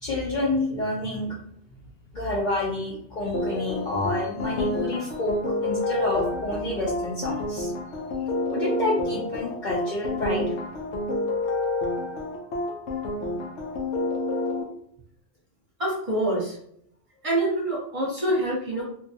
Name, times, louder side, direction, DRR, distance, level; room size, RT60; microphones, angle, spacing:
voice 1, 0.0-1.4 2.1-7.7 8.5-10.5, left 1 dB, 50° left, -4 dB, 0.7 m, -28 dB
sound 1, 3.3-14.6, left 2 dB, 80° left, 0.9 m, -29 dB
voice 2, 15.8-16.6 17.2-18.8, right 1 dB, 30° right, -5 dB, 0.9 m, -25 dB
2.5 x 2.3 x 2.6 m, 0.68 s
omnidirectional pair, 1.2 m